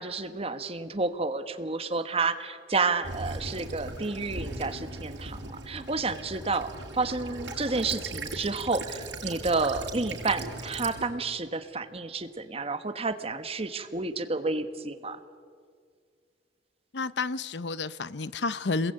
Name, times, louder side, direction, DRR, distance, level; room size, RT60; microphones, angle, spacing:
voice 1, 0.0-15.2, right 3 dB, 35° right, 1.5 m, -30 dB
Child speech kid speaking / Bird vocalization bird call bird song / Stream, 3.0-11.0, right 2 dB, 90° right, 6.1 m, -39 dB
voice 2, 16.9-18.9, left 3 dB, 70° left, 0.8 m, -30 dB
27.5 x 21.5 x 9.1 m
head